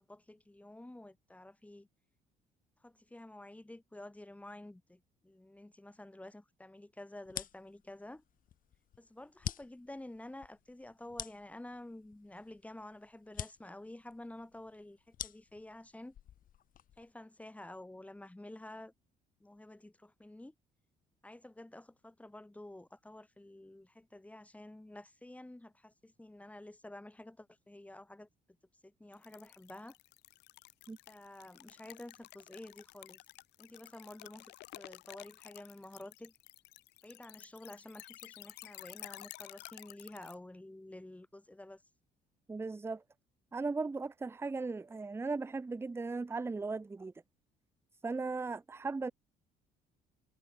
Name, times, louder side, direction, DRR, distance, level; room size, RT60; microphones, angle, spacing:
voice 1, 0.0-1.9 2.8-8.2 9.0-16.2 17.0-18.9 19.4-20.5 21.2-28.3 28.8-30.0 31.1-33.2 33.6-36.3 37.0-41.8, left 1 dB, 10° left, 5.8 m, -50 dB
sound 1, 7.2-17.1, left 10 dB, 55° left, 2.0 m, -47 dB
sound 2, 29.1-40.4, left 20 dB, 90° left, 2.5 m, -53 dB
voice 2, 42.5-43.0 43.5-47.1 48.0-49.1, right 3 dB, 15° right, 0.6 m, -37 dB
cardioid pair, 110°, 17 cm